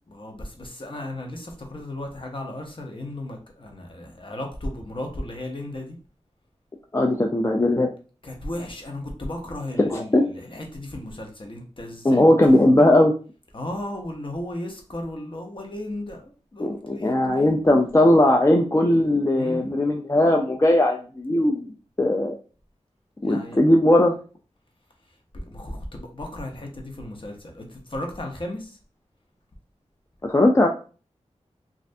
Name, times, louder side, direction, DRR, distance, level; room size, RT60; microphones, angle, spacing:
voice 1, 0.1-6.0 8.2-12.6 13.5-17.6 19.3-19.7 23.2-23.6 25.0-28.8, left 1 dB, 45° left, 1 dB, 0.8 m, -35 dB
voice 2, 6.9-7.9 9.9-10.2 12.0-13.1 16.6-22.3 23.2-24.2 30.2-30.7, left 1 dB, 25° left, 2 dB, 0.4 m, -19 dB
3.2 x 2.5 x 2.6 m, 0.37 s
wide cardioid pair, 60°, 12 cm